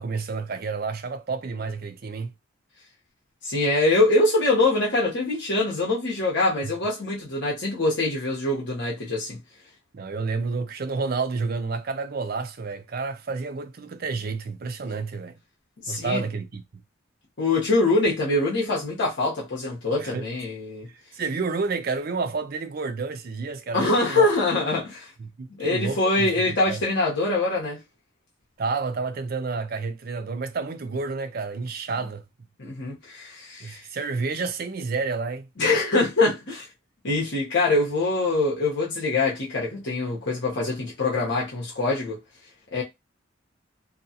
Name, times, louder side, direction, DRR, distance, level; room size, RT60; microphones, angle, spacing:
voice 1, 0.0-2.3 6.6-6.7 9.9-15.4 15.9-16.6 20.0-20.3 21.1-24.3 25.2-26.8 28.6-32.2 33.6-35.5, right 4 dB, 50° right, 0.5 m, -30 dB
voice 2, 3.4-9.4 15.8-16.2 17.4-20.9 23.7-25.1 25.6-27.8 32.6-33.8 35.6-36.7 37.0-42.2 42.7-42.8, left 2 dB, 60° left, 0.9 m, -24 dB
2.7 x 2.3 x 2.7 m
head